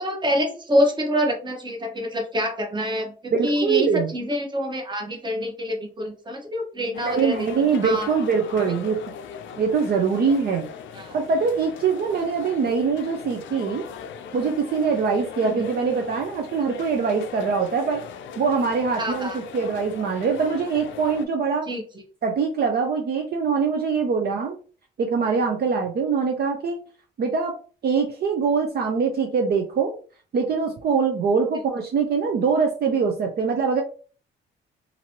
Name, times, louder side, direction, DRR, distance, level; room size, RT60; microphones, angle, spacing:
voice 1, 0.0-7.5 7.8-8.1 8.6-8.7 10.9-11.1 15.4-15.6 19.0-19.4 21.7-21.8, equal, 20° right, 3 dB, 1.0 m, -26 dB
voice 2, 3.3-4.1 7.0-9.0 9.6-10.7 11.1-13.9 14.3-18.0 18.4-21.7 22.2-24.6 25.0-26.8 27.2-27.6 27.8-29.9 30.3-33.8, right 5 dB, 50° right, 3 dB, 0.6 m, -23 dB
sound 1, 6.9-21.2, left 7 dB, 75° left, 0.5 m, -39 dB
2.9 x 2.6 x 2.8 m, 0.38 s
cardioid pair, 90°, 20 cm